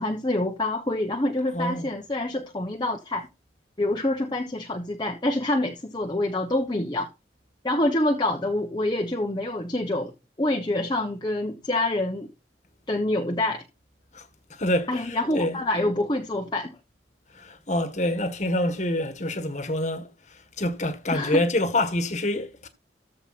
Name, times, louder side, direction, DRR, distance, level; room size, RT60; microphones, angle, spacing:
voice 1, 0.0-3.3 3.8-7.1 7.6-10.1 10.4-12.3 12.9-13.6 14.9-16.8 21.1-21.4, left 1 dB, 25° left, 1.1 m, -26 dB
voice 2, 1.5-1.9 14.1-14.2 14.5-15.6 17.3-22.7, left 1 dB, 40° left, 1.7 m, -27 dB
14.0 x 5.0 x 4.2 m
head